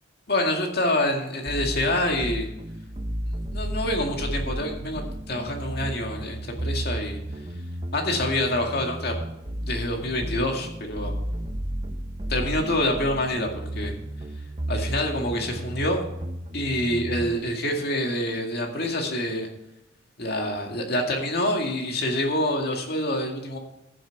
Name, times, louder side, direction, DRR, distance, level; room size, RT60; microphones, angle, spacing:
voice 1, 0.3-2.5 3.5-5.0 5.3-7.2 7.9-9.2 9.6-11.2 12.3-14.0 14.7-16.0 16.5-19.5 20.2-23.6, left 1 dB, 55° left, 2 dB, 2.1 m, -26 dB
sound 1, 1.5-17.4, right 1 dB, 30° right, 0.8 m, -33 dB
15.5 x 7.7 x 4.6 m, 0.87 s
head